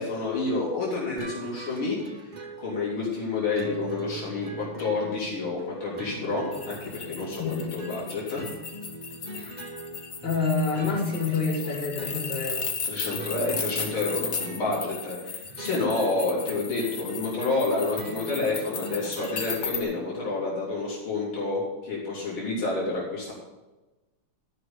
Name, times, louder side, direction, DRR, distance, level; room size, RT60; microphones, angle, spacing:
voice 1, 0.0-2.0 2.6-8.4 12.9-23.3, left 3 dB, 70° left, -6 dB, 3.6 m, -29 dB
sound 1, 1.2-20.4, right 3 dB, 60° right, 0.4 m, -42 dB
sound 2, 6.5-19.8, left 6 dB, 50° left, 1.6 m, -36 dB
voice 2, 10.2-12.6, left 4 dB, 90° left, -6 dB, 4.2 m, -27 dB
12.0 x 5.8 x 6.8 m, 1.1 s
omnidirectional pair, 2.4 m